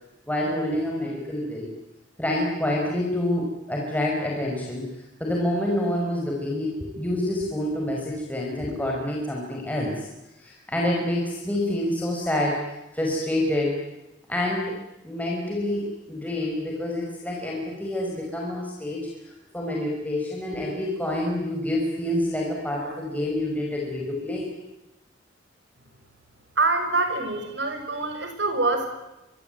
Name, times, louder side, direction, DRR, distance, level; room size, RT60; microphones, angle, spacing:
voice 1, 0.3-1.7 2.2-10.1 10.4-13.8 14.3-14.7 15.0-24.5, left 1 dB, 10° left, -2 dB, 5.6 m, -27 dB
voice 2, 26.5-28.9, right 3 dB, 60° right, 6 dB, 6.6 m, -25 dB
26.0 x 24.0 x 9.3 m, 0.97 s
head